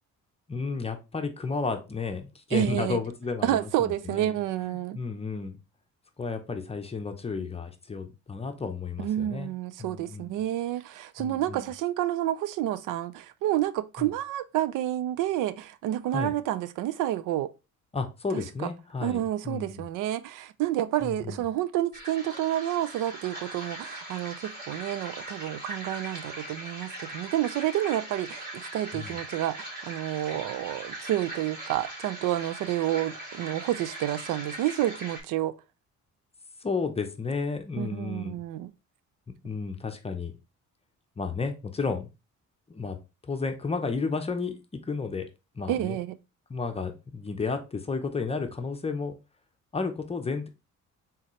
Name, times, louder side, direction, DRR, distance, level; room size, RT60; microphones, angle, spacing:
voice 1, 0.5-5.6 6.2-9.5 9.8-10.4 11.2-11.7 14.0-14.1 16.1-16.3 17.9-19.9 21.0-21.4 28.9-29.2 36.6-38.4 39.3-40.3 41.2-42.1 42.7-43.0 43.2-45.3 45.5-46.0 46.5-49.2 49.7-50.5, left 4 dB, 20° left, 0.6 m, -32 dB
voice 2, 2.5-3.0 3.4-5.0 9.0-17.5 18.3-18.4 19.0-35.5 37.8-38.7 45.7-46.1, right 13 dB, 85° right, 0.5 m, -29 dB
sound 1, 21.9-35.2, right 1 dB, 30° right, 2.5 m, -40 dB
4.2 x 3.8 x 3.0 m
cardioid pair, 120°, 31 cm